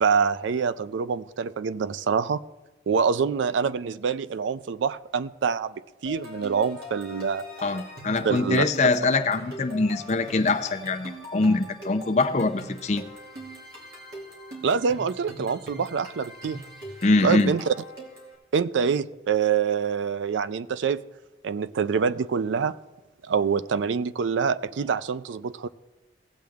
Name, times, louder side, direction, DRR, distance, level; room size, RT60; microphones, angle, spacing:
voice 1, 0.0-2.4 2.9-7.4 8.2-8.6 14.6-16.6 17.2-17.7 18.5-21.0 21.4-22.7 23.2-25.7, right 6 dB, 85° right, 16 dB, 0.4 m, -25 dB
sound 1, 6.0-18.3, left 1 dB, 55° right, 2.5 m, -42 dB
voice 2, 7.6-13.0 17.0-17.5, left 3 dB, 40° left, 6 dB, 0.5 m, -23 dB
17.5 x 7.6 x 3.5 m, 1.1 s
head